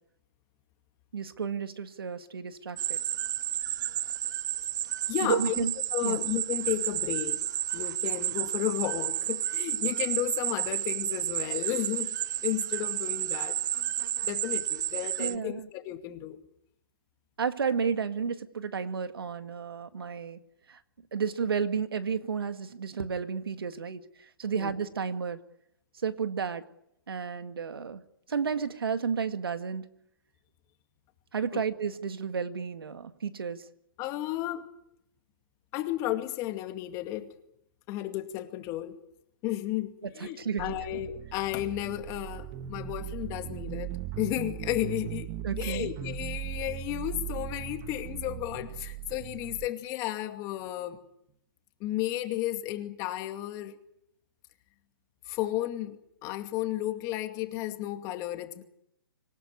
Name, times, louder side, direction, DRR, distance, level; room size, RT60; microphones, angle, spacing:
voice 1, 1.1-3.0 5.2-5.7 6.0-6.2 15.2-15.7 17.4-20.4 20.7-20.8 21.1-24.0 24.4-25.4 26.0-26.6 27.1-28.0 28.3-29.9 31.3-33.6 40.0-40.7 45.4-45.9, right 6 dB, 80° right, 9 dB, 2.0 m, -32 dB
sound 1, 2.8-15.3, right 11 dB, 50° right, 0.9 m, -31 dB
voice 2, 5.1-5.6 5.9-7.4 7.7-12.2 12.4-13.6 14.2-16.4 24.5-24.7 31.5-31.6 34.0-34.6 35.7-37.3 37.9-38.9 39.4-43.9 44.2-45.3 45.6-51.0 51.8-53.8 55.3-58.6, left 14 dB, 25° left, 7 dB, 2.3 m, -33 dB
sound 2, 40.6-49.7, right 13 dB, 30° right, 1.1 m, -38 dB
26.5 x 17.0 x 9.7 m, 0.79 s
hypercardioid pair, 145°, 12 cm